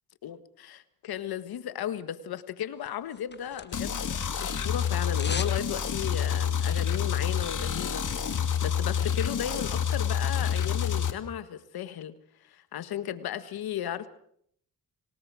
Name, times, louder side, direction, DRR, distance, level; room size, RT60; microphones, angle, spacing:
voice 1, 0.2-8.1 8.4-12.1 12.4-14.1, left 10 dB, 75° left, 12 dB, 1.6 m, -35 dB
sound 1, 2.9-4.1 4.3-5.6 5.9-6.0, left 5 dB, 30° left, 1.3 m, -39 dB
sound 2, 3.7-11.1, left 8 dB, 55° left, 2.5 m, -28 dB
26.5 x 18.0 x 6.4 m, 0.68 s
cardioid pair, 75°, 37 cm